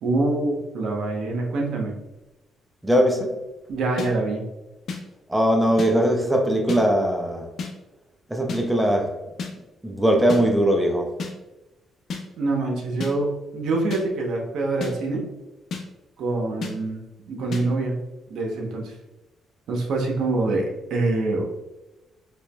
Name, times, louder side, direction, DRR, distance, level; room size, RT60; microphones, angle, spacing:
voice 1, 0.0-1.9 3.7-4.4 12.4-15.3 16.2-17.9 18.3-18.9 19.7-21.4, right 2 dB, 75° right, 0.8 m, -25 dB
voice 2, 2.8-3.3 5.3-7.5 8.3-9.2 9.8-11.1, equal, 10° right, 0.6 m, -20 dB
sound 1, 4.0-4.1 4.9-5.0 5.8-5.9 6.7-6.8 7.6-7.7 8.5-8.6 9.4-9.5 10.3-10.4 11.2-11.3 12.1-12.2 13.0-13.1 13.9-14.0 14.8-14.9 15.7-15.8 16.6-16.7 17.5-17.6, left 5 dB, 60° left, 0.6 m, -30 dB
4.4 x 3.0 x 2.2 m
cardioid pair, 90°, 0 cm